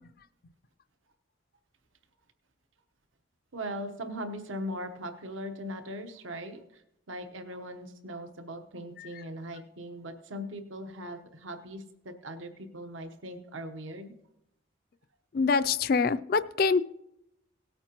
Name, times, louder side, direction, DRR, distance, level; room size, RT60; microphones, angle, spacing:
voice 1, 3.5-6.8 7.1-14.1, equal, 85° right, 7 dB, 1.0 m, -39 dB
voice 2, 15.3-16.8, left 4 dB, 50° left, 14 dB, 0.4 m, -25 dB
18.0 x 8.8 x 2.9 m, 0.81 s
head